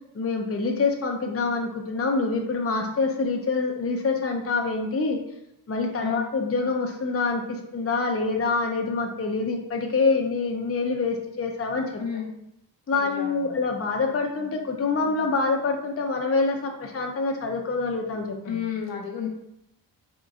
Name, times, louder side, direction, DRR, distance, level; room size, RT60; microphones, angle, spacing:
voice 1, 0.1-5.2 5.7-12.0 12.9-18.6, left 4 dB, 30° left, 2 dB, 0.7 m, -26 dB
voice 2, 12.0-12.3 12.9-13.5 18.5-19.3, left 8 dB, 65° left, 1 dB, 1.0 m, -31 dB
3.7 x 3.7 x 2.5 m, 0.79 s
supercardioid pair, 40°, 48 cm